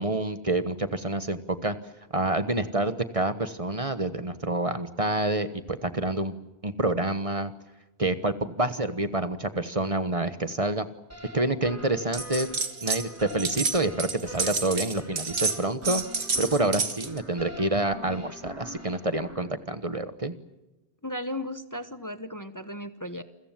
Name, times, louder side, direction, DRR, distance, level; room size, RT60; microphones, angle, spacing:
voice 1, 0.0-1.7 2.1-6.3 6.6-7.5 8.0-10.9 11.3-12.5 12.8-20.3, right 2 dB, 35° right, 11 dB, 1.3 m, -28 dB
sound 1, 11.1-19.5, left 1 dB, 15° right, 5.0 m, -44 dB
sound 2, 12.1-13.0 13.3-17.2, right 4 dB, 80° right, 2.0 m, -29 dB
voice 2, 21.0-23.2, left 1 dB, 20° left, 10 dB, 1.1 m, -35 dB
29.0 x 22.0 x 7.6 m, 1.0 s
omnidirectional pair, 1.1 m